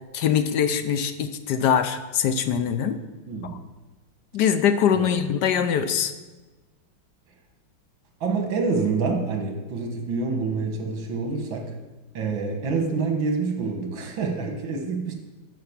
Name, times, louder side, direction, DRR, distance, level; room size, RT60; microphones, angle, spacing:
voice 1, 0.1-3.0 3.4-3.6 4.3-6.1, left 8 dB, 70° left, 10 dB, 1.1 m, -23 dB
voice 2, 3.3-3.6 4.9-5.3 8.2-11.7 12.1-15.1, right 4 dB, 75° right, 3 dB, 2.1 m, -27 dB
12.5 x 5.2 x 7.2 m, 1.2 s
omnidirectional pair, 2.1 m